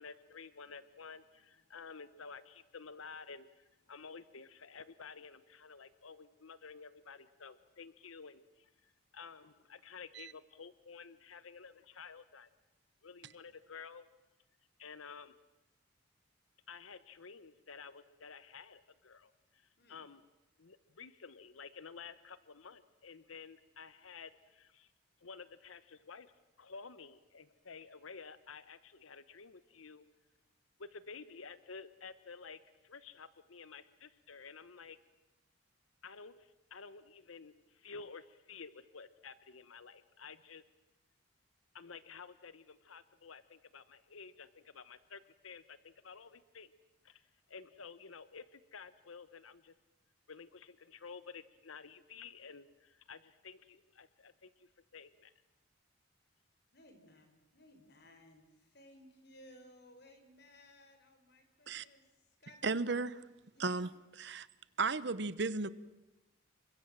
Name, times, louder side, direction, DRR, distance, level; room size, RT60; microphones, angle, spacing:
voice 1, 0.0-12.5 13.0-14.1 14.8-15.3 16.7-20.2 20.6-24.9 25.2-26.3 26.6-30.1 30.8-35.0 36.0-40.6 41.7-46.7 47.0-49.7 50.3-55.3, left 5 dB, 90° left, 14 dB, 1.0 m, -52 dB
voice 2, 56.7-62.8 63.5-63.8, left 1 dB, 50° left, 7 dB, 4.5 m, -60 dB
voice 3, 62.6-63.1 63.6-63.9 64.2-64.5 64.8-65.7, right 4 dB, 55° right, 17 dB, 0.9 m, -34 dB
29.5 x 24.0 x 7.5 m, 0.99 s
head